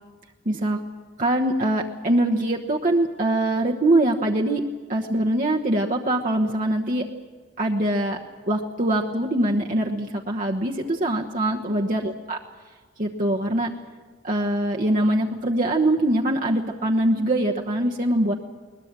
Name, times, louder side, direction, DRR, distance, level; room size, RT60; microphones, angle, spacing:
voice 1, 0.4-0.8 1.2-4.6 4.9-7.1 7.6-8.2 8.5-12.4 13.0-13.7 14.2-18.3, right 1 dB, 50° right, 0 dB, 1.2 m, -23 dB
21.5 x 20.5 x 7.5 m, 1.4 s
head